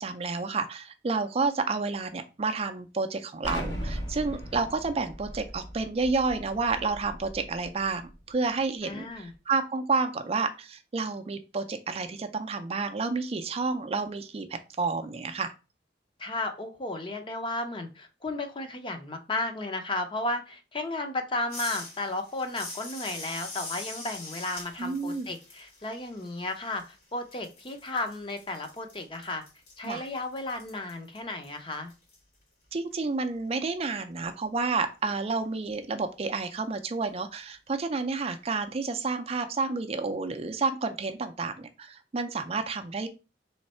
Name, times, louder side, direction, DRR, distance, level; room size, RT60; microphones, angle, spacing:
voice 1, 0.0-8.0 8.3-15.5 24.8-25.3 29.8-30.1 32.7-43.1, right 4 dB, 35° right, 7 dB, 0.4 m, -30 dB
Explosion, 3.4-8.1, equal, 80° left, 1.5 m, -38 dB
voice 2, 8.8-9.3 16.2-29.4 29.8-31.9, left 2 dB, 30° left, 6 dB, 0.6 m, -34 dB
sound 1, 21.5-27.0 27.3-32.2, left 3 dB, 60° left, 2.1 m, -43 dB
3.5 x 3.2 x 4.2 m, 0.31 s
head